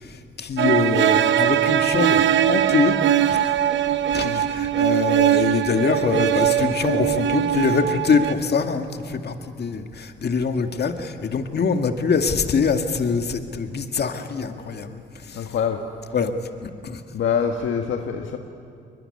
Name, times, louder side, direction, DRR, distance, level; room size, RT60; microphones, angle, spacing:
voice 1, 0.0-3.0 3.9-15.5 16.1-16.3 16.6-17.0, left 5 dB, 55° left, 6 dB, 2.1 m, -24 dB
sound 1, 0.6-8.3, right 11 dB, 70° right, 1.0 m, -21 dB
voice 2, 15.3-15.8 17.1-18.4, left 7 dB, 75° left, 4 dB, 1.5 m, -25 dB
22.5 x 21.5 x 9.9 m, 2.3 s
supercardioid pair, 60°, 20 cm